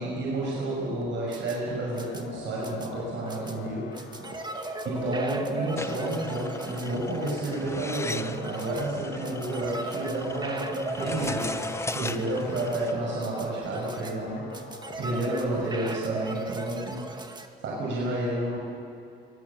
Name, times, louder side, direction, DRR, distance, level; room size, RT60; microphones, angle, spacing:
voice 1, 0.0-3.9 4.2-4.3 4.8-11.6 11.9-14.5 15.0-17.0 17.6-18.6, right 1 dB, 70° right, -4 dB, 6.3 m, -30 dB
sound 1, 1.0-17.5, right 2 dB, 20° right, 1.9 m, -38 dB
sound 2, 1.7-15.5, left 6 dB, 70° left, 1.9 m, -45 dB
sound 3, 5.8-12.9, left 2 dB, 15° left, 0.8 m, -37 dB
24.0 x 17.0 x 7.3 m, 2.6 s
cardioid pair, 90°, 20 cm